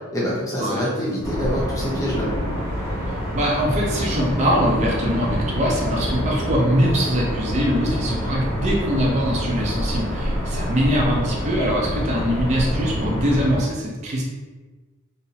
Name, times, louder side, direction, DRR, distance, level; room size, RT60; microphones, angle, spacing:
voice 1, 0.1-2.3, equal, 15° left, -6 dB, 0.6 m, -25 dB
sound 1, 1.2-13.6, equal, 10° right, 1.0 m, -26 dB
voice 2, 3.3-14.2, equal, 30° right, -3 dB, 0.4 m, -22 dB
2.7 x 2.0 x 2.7 m, 1.3 s
head